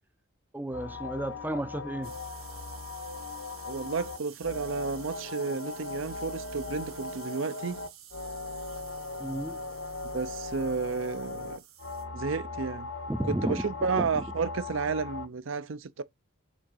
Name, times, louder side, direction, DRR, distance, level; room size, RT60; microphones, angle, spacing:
voice 1, 0.5-2.1 9.2-9.6 13.1-14.2, right 1 dB, 10° right, 0.5 m, -33 dB
sound 1, 0.7-15.3, left 3 dB, 70° left, 1.0 m, -39 dB
sound 2, 2.0-12.0, right 10 dB, 90° right, 2.2 m, -51 dB
voice 2, 3.6-7.8 10.1-11.6 12.1-12.9 13.3-16.0, right 4 dB, 65° right, 0.6 m, -32 dB
6.2 x 4.0 x 5.4 m
head